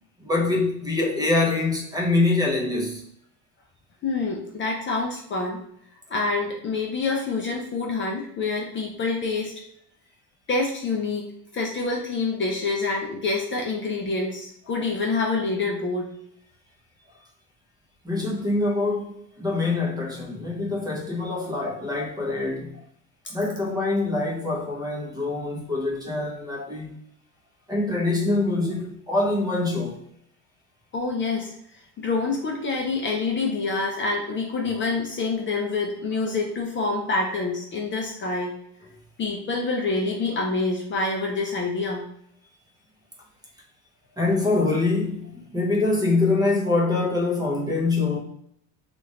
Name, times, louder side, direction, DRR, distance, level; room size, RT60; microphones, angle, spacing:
voice 1, 0.2-3.0 18.0-22.8 23.3-26.9 27.7-30.0 44.2-48.2, left 3 dB, 10° right, 0.6 m, -24 dB
voice 2, 4.0-5.6 6.1-9.5 10.5-16.1 30.9-31.5 32.0-38.5 39.2-42.0, left 3 dB, 30° left, 0.5 m, -27 dB
3.0 x 2.4 x 3.2 m
cardioid pair, 130°, 37 cm